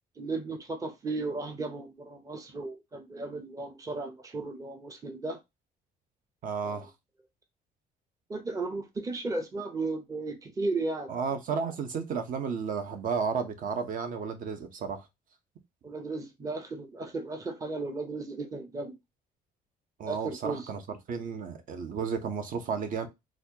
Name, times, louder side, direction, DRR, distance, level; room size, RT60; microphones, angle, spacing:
voice 1, 0.2-5.4 6.6-6.9 8.3-11.1 15.8-19.0 20.0-20.7, right 3 dB, 20° right, 0.7 m, -35 dB
voice 2, 6.4-6.9 11.1-15.1 20.0-20.8 21.1-23.1, right 6 dB, 55° right, 0.9 m, -32 dB
4.1 x 2.5 x 2.8 m
cardioid pair, 110°, 17 cm